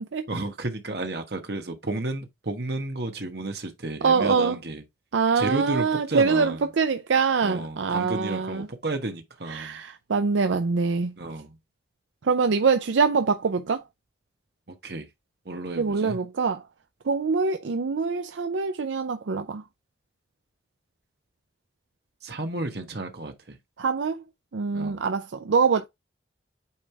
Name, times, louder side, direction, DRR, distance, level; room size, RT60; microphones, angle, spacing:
voice 1, 0.3-4.8 5.4-6.7 7.4-9.8 11.2-11.6 14.7-15.1 15.4-16.2 22.2-23.6 24.7-25.0, right 2 dB, 60° right, 1.3 m, -32 dB
voice 2, 4.0-4.6 5.1-8.7 9.5-11.1 12.2-13.8 15.8-16.6 17.1-19.6 23.8-24.2 24.5-25.9, right 5 dB, 85° right, 0.5 m, -24 dB
8.6 x 3.4 x 3.4 m
head